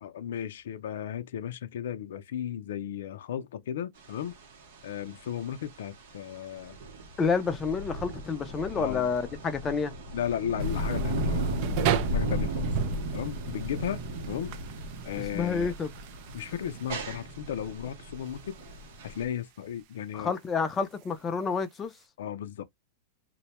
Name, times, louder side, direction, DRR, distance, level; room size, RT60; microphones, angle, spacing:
voice 1, 0.0-4.4 4.8-6.8 8.8-9.1 10.1-11.7 12.1-12.7 13.1-14.0 14.3-14.5 15.0-15.7 16.3-18.6 19.0-20.4 22.2-22.6, left 9 dB, 80° left, 0.4 m, -35 dB
sound 1, 4.0-19.3, equal, 70° right, 0.8 m, -35 dB
voice 2, 7.2-9.9 15.3-15.9 20.1-21.9, left 5 dB, 20° left, 0.4 m, -29 dB
sound 2, 10.6-22.0, right 11 dB, 50° right, 0.3 m, -38 dB
2.1 x 2.1 x 2.9 m
supercardioid pair, 140°, 0 cm